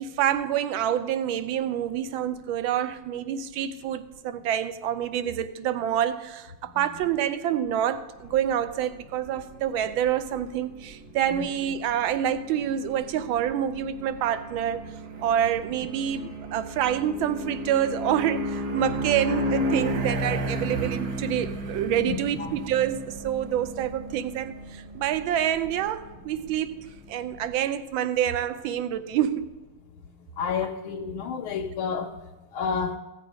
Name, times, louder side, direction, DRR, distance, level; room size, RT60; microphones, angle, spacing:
voice 1, 0.0-14.8 15.2-29.5, right 10 dB, 75° right, 1.4 m, -27 dB
sound 1, 8.2-27.6, right 1 dB, 55° right, 1.4 m, -34 dB
voice 2, 22.1-22.5 30.4-32.1 32.5-33.0, left 6 dB, 90° left, 1.5 m, -30 dB
15.5 x 7.5 x 5.0 m
omnidirectional pair, 2.3 m